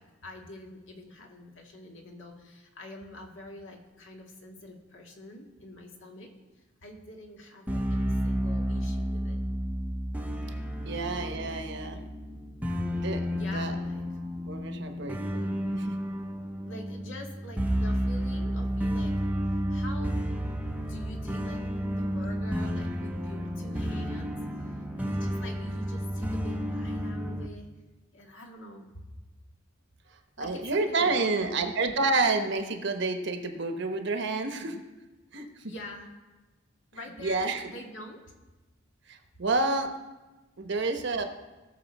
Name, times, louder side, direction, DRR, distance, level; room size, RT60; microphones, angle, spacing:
voice 1, 0.0-6.3 6.8-9.4 13.3-14.2 16.6-19.1 19.4-20.2 20.7-24.3 24.6-27.7 28.1-28.9 30.4-31.7 35.6-36.1 36.9-38.2, left 1 dB, 65° left, 1 dB, 1.8 m, -46 dB
sound 1, 7.7-27.5, equal, 10° right, 0.6 m, -31 dB
voice 2, 10.9-12.0 12.9-13.7 14.4-15.5 15.7-15.9 30.4-34.8 35.3-35.7 37.2-37.7 39.1-39.9 40.6-41.2, right 3 dB, 60° right, 6 dB, 1.0 m, -29 dB
18.5 x 6.7 x 4.2 m, 1.1 s
head